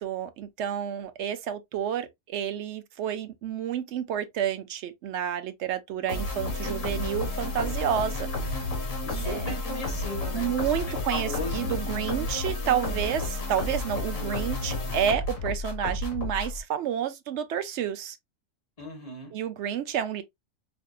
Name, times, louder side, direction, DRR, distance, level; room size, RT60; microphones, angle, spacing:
voice 1, 0.0-8.6 9.2-9.6 10.3-18.2 19.3-20.2, right 9 dB, 65° right, 0.8 m, -30 dB
sound 1, 6.1-16.6, left 2 dB, 70° left, 1.7 m, -31 dB
voice 2, 9.0-10.5 10.9-11.7 18.8-19.3, left 2 dB, 30° left, 1.4 m, -37 dB
5.0 x 2.7 x 2.2 m
omnidirectional pair, 1.4 m